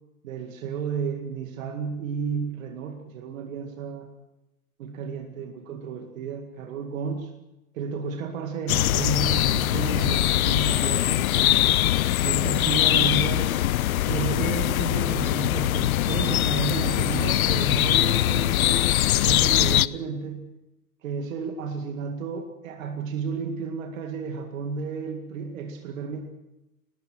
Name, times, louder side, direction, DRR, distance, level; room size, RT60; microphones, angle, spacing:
voice 1, 0.2-4.1 4.8-7.3 7.7-11.6 12.2-13.6 14.1-18.9 19.2-20.4 21.0-26.2, right 6 dB, 55° right, 5 dB, 2.2 m, -32 dB
sound 1, 8.7-19.9, left 13 dB, 65° left, 0.7 m, -22 dB
22.5 x 19.5 x 6.1 m, 0.96 s
figure-of-eight pair, 90°, 46 cm